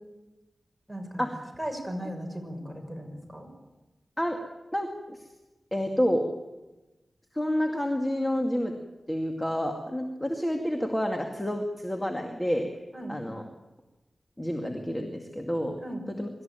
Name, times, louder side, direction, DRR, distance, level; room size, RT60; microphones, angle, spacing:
voice 1, 0.9-1.3 1.6-3.5 12.9-13.2 15.8-16.1, equal, 5° right, 2 dB, 6.2 m, -37 dB
voice 2, 4.7-5.2 5.7-6.3 7.3-8.7 9.1-12.7 13.1-13.4 14.4-15.8 16.2-16.3, equal, 10° left, 3 dB, 2.3 m, -29 dB
25.5 x 14.0 x 9.1 m, 1.1 s
wide cardioid pair, 75°, 0 cm